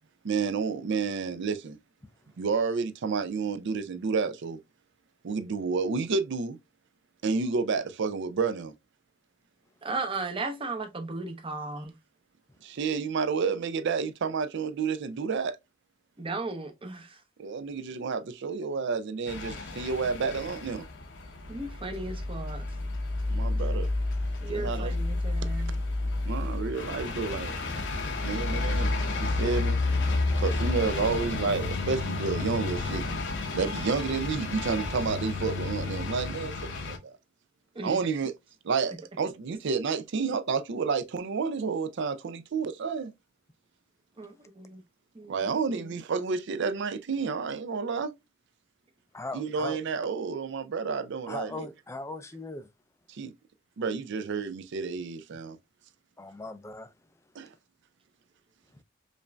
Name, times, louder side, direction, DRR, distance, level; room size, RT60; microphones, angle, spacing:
voice 1, 0.2-1.8 2.4-4.6 5.2-6.6 7.2-8.7 12.6-15.6 17.4-20.9 23.3-23.9 24.5-24.9 25.5-25.6 26.2-27.5 28.2-28.9 29.2-29.8 30.4-33.2 33.5-37.1 37.8-38.3 38.6-43.1 45.3-48.1 49.3-51.7 53.1-53.3 53.8-55.6 57.4-57.5, right 5 dB, 60° right, 0.4 m, -30 dB
voice 2, 9.8-11.9 16.2-17.2 21.5-22.6 24.4-25.7 37.7-38.0 44.2-44.8 45.1-46.0, right 3 dB, 25° right, 0.7 m, -36 dB
sound 1, 19.3-37.0, left 2 dB, 65° left, 0.7 m, -31 dB
voice 3, 49.1-49.8 51.3-52.7 56.2-56.9, left 2 dB, 15° left, 0.4 m, -39 dB
5.1 x 2.5 x 2.2 m
head